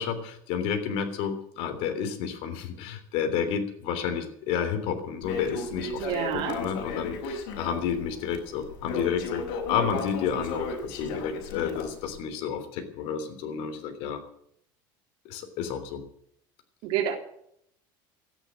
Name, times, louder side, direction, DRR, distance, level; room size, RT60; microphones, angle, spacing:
voice 1, 0.0-6.1 6.3-14.2 15.3-16.0, left 7 dB, 65° left, 7 dB, 3.3 m, -31 dB
Crackle, 5.2-12.2, left 3 dB, 85° left, 4.6 m, -35 dB
voice 2, 6.0-6.6 16.8-17.2, right 10 dB, 65° right, 4 dB, 3.4 m, -28 dB
13.5 x 10.0 x 9.0 m, 0.68 s
supercardioid pair, 125°, 11 cm